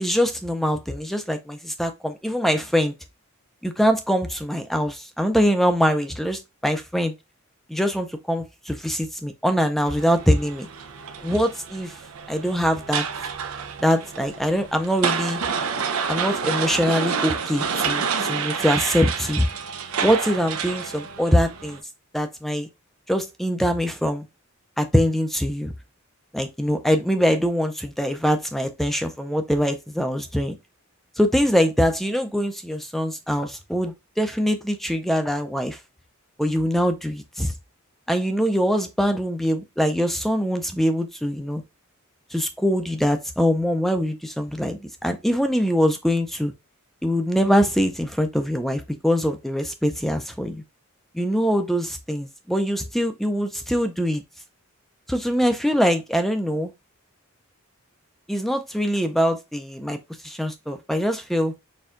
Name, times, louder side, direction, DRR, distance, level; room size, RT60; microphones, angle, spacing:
voice 1, 0.0-2.9 3.6-7.1 7.7-10.7 11.2-11.9 12.3-13.0 13.8-15.4 16.1-19.5 20.0-21.8 22.1-22.7 23.1-24.2 24.8-25.7 26.3-30.6 31.2-35.8 36.4-37.5 38.1-41.6 42.3-46.5 47.0-50.6 51.1-54.2 55.1-56.7 58.3-60.0 60.2-61.5, equal, ahead, 0.5 m, -23 dB
sound 1, 9.9-21.8, right 6 dB, 80° right, 0.6 m, -29 dB
4.3 x 2.3 x 3.6 m
head